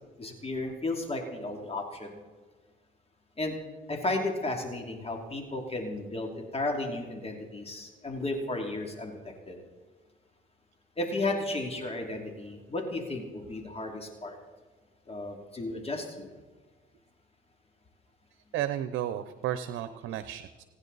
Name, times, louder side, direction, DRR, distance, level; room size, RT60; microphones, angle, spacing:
voice 1, 0.2-2.1 3.4-3.6 3.9-9.6 11.0-14.4 15.1-16.3, left 2 dB, 30° left, 2 dB, 2.7 m, -34 dB
voice 2, 18.5-20.6, right 11 dB, 85° right, 11 dB, 0.7 m, -33 dB
29.0 x 9.8 x 4.1 m, 1.3 s
cardioid pair, 90°, 20 cm